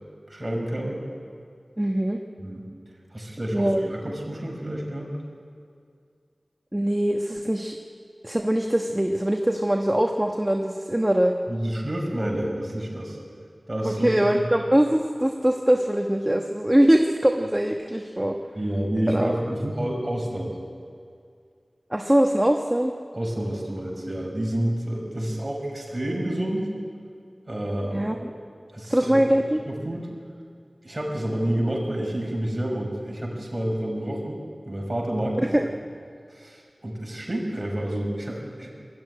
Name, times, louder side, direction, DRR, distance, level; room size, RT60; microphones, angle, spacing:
voice 1, 0.3-1.0 2.4-2.7 3.1-5.1 11.5-13.2 13.7-14.4 18.5-20.6 23.1-26.7 27.5-28.2 28.7-29.2 29.7-30.1 30.8-34.4 34.7-35.6 36.3-38.7, right 1 dB, 35° right, -2 dB, 5.7 m, -29 dB
voice 2, 1.8-2.2 3.5-3.9 6.7-7.8 8.2-11.3 13.8-18.4 19.1-19.4 21.9-22.9 27.9-28.1 28.9-29.6 35.4-35.7, right 1 dB, 15° right, 2 dB, 1.2 m, -22 dB
21.0 x 14.0 x 9.7 m, 2.2 s
wide cardioid pair, 55°, 0 cm